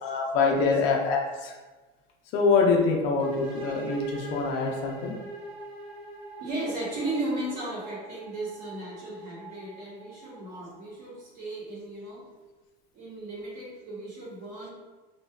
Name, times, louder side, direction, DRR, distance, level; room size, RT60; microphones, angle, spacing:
voice 1, 0.0-1.5 2.3-5.2, left 4 dB, 55° left, 0 dB, 0.5 m, -25 dB
sound 1, 3.2-10.9, right 3 dB, 75° right, 0.6 m, -42 dB
voice 2, 6.4-12.2 12.9-14.7, right 2 dB, 50° right, -5 dB, 1.0 m, -35 dB
2.6 x 2.2 x 2.2 m, 1.2 s
cardioid pair, 170°, 20 cm